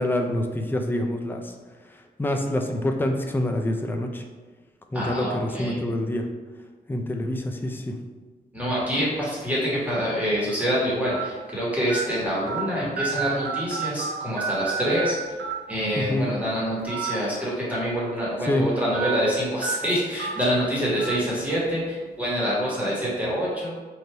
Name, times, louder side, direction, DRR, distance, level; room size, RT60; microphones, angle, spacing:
voice 1, 0.0-1.5 2.2-4.2 4.9-6.3 6.9-7.9 16.0-16.3 18.5-18.6, left 1 dB, 10° left, 4 dB, 0.4 m, -26 dB
voice 2, 4.9-5.8 8.5-15.2 15.7-23.7, equal, 10° right, -7 dB, 1.3 m, -26 dB
sound 1, 8.9-9.2 9.9-10.0 11.1-11.2 11.9-12.0 12.5-12.6 13.0-14.1 14.4-15.1 15.4-15.5 16.8-17.1 17.5-17.6 18.9-19.1 19.6-19.7 20.2-20.3 21.0-21.1, right 5 dB, 75° right, 1.0 m, -29 dB
3.2 x 2.6 x 4.4 m, 1.3 s
cardioid pair, 90°, 17 cm